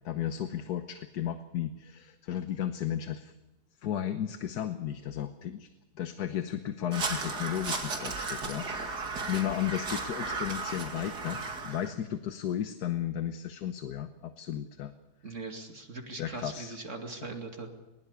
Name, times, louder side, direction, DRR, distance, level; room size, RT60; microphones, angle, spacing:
voice 1, 0.0-3.3 3.8-5.7 5.9-14.9 15.2-15.3 16.2-16.8, left 10 dB, 75° left, 9 dB, 1.5 m, -34 dB
Crow, 6.9-11.9, right 3 dB, 85° right, 3.0 m, -35 dB
voice 2, 15.2-17.7, right 3 dB, 50° right, 3 dB, 2.6 m, -40 dB
21.0 x 20.5 x 6.9 m, 1.0 s
omnidirectional pair, 1.7 m